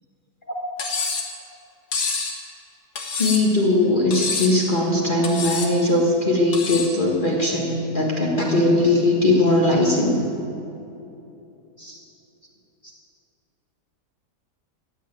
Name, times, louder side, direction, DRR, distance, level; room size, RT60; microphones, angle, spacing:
Cutlery silverware, 0.8-1.3 1.9-2.4 3.0-3.6 4.1-4.6 5.2-5.7 6.5-7.0, left 4 dB, 75° left, 2.1 m, -27 dB
voice 1, 3.2-10.2 11.8-11.9, left 2 dB, 30° left, -3 dB, 1.6 m, -20 dB
15.5 x 8.4 x 9.0 m, 2.8 s
omnidirectional pair, 1.8 m